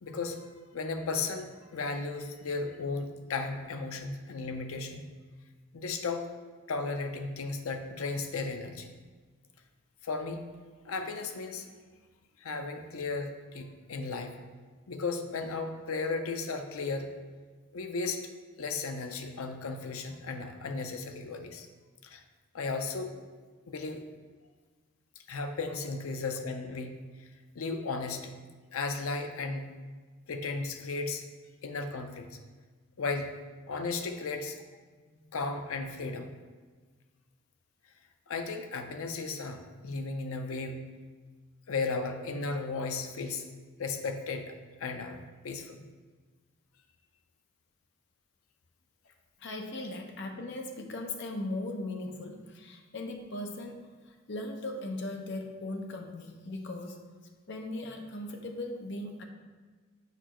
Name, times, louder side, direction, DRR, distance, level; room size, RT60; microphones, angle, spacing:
voice 1, 0.0-5.0 5.7-6.3 6.7-8.9 10.0-10.4 10.8-11.7 12.4-14.4 14.9-17.1 17.7-18.2 18.6-21.7 22.0-22.2 22.5-23.1 23.7-24.0 25.3-27.0 27.6-28.3 28.7-29.7 30.3-31.2 31.6-32.4 33.0-33.3 33.7-34.6 35.3-36.3 38.3-40.8 41.7-43.5 43.8-44.5 44.8-45.8, left 3 dB, 90° left, 6 dB, 0.6 m, -35 dB
voice 2, 49.4-57.1 57.5-59.2, left 2 dB, 55° left, 3 dB, 0.7 m, -38 dB
6.8 x 5.0 x 3.0 m, 1.4 s
head